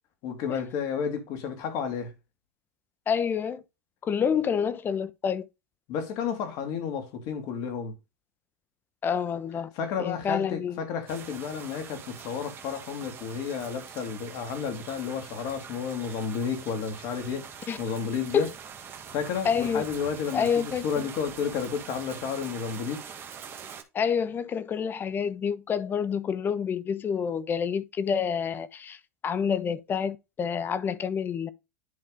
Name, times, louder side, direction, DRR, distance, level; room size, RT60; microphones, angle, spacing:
voice 1, 0.2-2.1 5.9-7.9 9.7-17.5 17.8-18.5 19.1-23.0, left 6 dB, 50° left, 2.3 m, -31 dB
voice 2, 3.1-3.6 4.0-5.4 9.0-9.7 10.0-10.8 17.7-17.8 18.3-18.5 19.4-19.8 20.3-21.1 23.9-31.5, left 7 dB, 25° left, 0.8 m, -28 dB
sound 1, 11.1-23.8, right 7 dB, 25° right, 1.4 m, -44 dB
10.5 x 3.6 x 3.8 m
hypercardioid pair, 115°, 8 cm